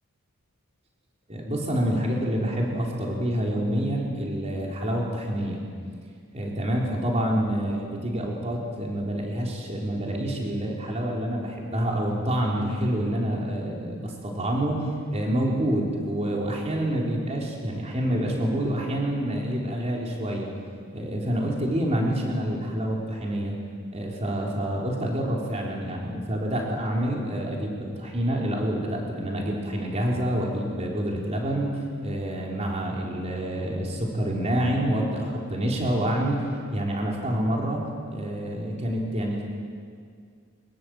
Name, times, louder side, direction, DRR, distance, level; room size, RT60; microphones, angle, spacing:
voice 1, 1.3-5.6 6.3-20.5 20.9-23.5 23.9-36.5 36.7-39.4, right 1 dB, 30° right, -2 dB, 4.0 m, -27 dB
24.0 x 21.0 x 7.9 m, 2.1 s
head